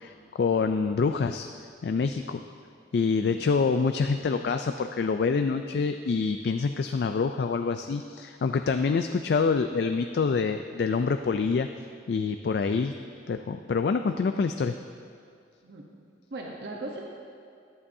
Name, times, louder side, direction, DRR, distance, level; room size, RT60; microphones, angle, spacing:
voice 1, 0.0-2.4 2.9-11.7 12.1-12.9 13.3-14.7, left 5 dB, 65° left, 7 dB, 0.3 m, -26 dB
voice 2, 3.1-3.4 15.6-15.8 16.3-17.0, right 2 dB, 70° right, -1 dB, 1.0 m, -38 dB
14.0 x 11.0 x 2.7 m, 2.4 s
head